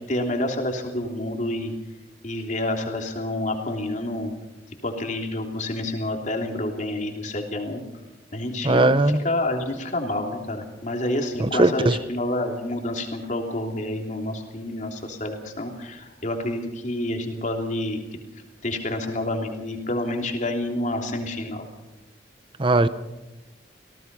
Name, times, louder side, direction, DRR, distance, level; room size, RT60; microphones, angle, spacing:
voice 1, 0.0-1.7 2.2-4.3 4.8-7.8 8.3-18.0 18.6-21.7, left 1 dB, 40° left, 3.2 m, -28 dB
voice 2, 8.6-9.2 11.6-11.9 22.6-22.9, right 2 dB, 25° right, 0.8 m, -18 dB
26.5 x 18.0 x 5.5 m
head